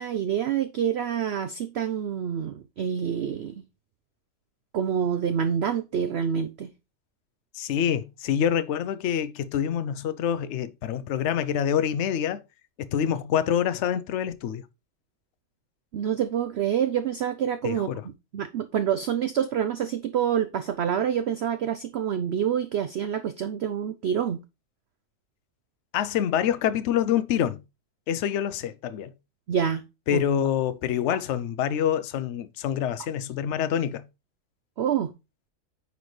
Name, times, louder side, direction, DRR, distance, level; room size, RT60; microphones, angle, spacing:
voice 1, 0.0-3.6 4.7-6.7 15.9-24.4 29.5-29.8 30.1-30.2 34.8-35.1, right 8 dB, 80° right, 0.5 m, -27 dB
voice 2, 7.5-12.4 12.8-14.6 17.6-18.0 25.9-27.6 28.1-29.1 30.1-34.0, left 9 dB, 60° left, 0.7 m, -26 dB
9.3 x 4.0 x 3.1 m
omnidirectional pair, 1.7 m